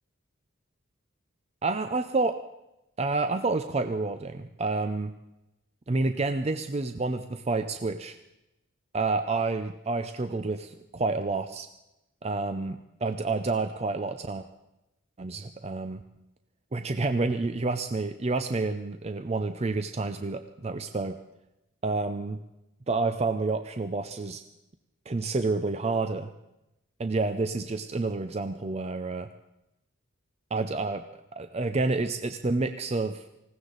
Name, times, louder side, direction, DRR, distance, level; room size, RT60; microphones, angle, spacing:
voice 1, 1.6-2.4 3.0-5.1 5.9-8.2 8.9-11.7 12.2-14.4 15.2-16.0 16.7-21.2 21.8-22.4 22.9-24.4 25.1-26.3 27.0-29.3 30.5-31.0 31.3-33.2, right 3 dB, 30° right, 9 dB, 0.5 m, -29 dB
19.5 x 16.5 x 3.9 m, 0.90 s
head